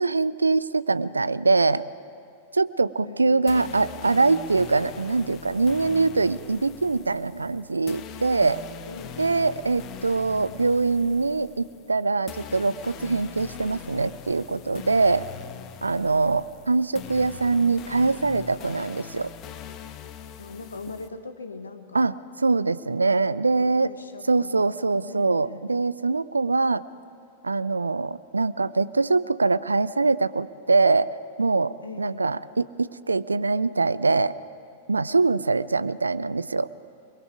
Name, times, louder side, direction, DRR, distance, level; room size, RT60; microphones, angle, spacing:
voice 1, 0.0-1.8 2.5-8.6 9.2-15.3 15.8-19.3 21.9-23.9 24.3-26.8 27.4-31.1 31.4-34.3 34.9-36.7, right 3 dB, 80° right, 18 dB, 0.5 m, -23 dB
voice 2, 3.0-4.0 8.9-9.7 16.0-16.5 20.4-22.1 23.3-25.7 31.8-32.3, left 4 dB, 80° left, 9 dB, 1.2 m, -41 dB
sound 1, 3.5-21.1, left 9 dB, 35° left, 1.3 m, -42 dB
28.0 x 21.0 x 4.7 m, 2.4 s
figure-of-eight pair, 95°, 0 cm